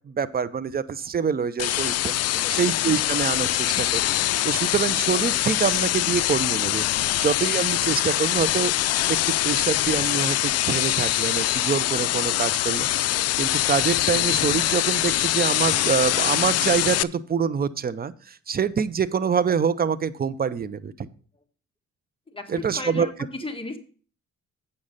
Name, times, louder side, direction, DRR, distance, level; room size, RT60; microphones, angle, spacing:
voice 1, 0.1-2.1 2.5-4.1 4.4-6.9 7.2-8.7 9.1-9.2 9.4-12.9 13.4-21.1 22.5-23.1, right 6 dB, 30° right, 14 dB, 0.7 m, -25 dB
sound 1, 1.6-17.0, left 14 dB, 55° left, 0.4 m, -23 dB
voice 2, 2.3-2.7 22.3-23.8, left 2 dB, 20° left, 5 dB, 1.7 m, -36 dB
8.5 x 6.6 x 5.5 m, 0.41 s
cardioid pair, 90°, 30 cm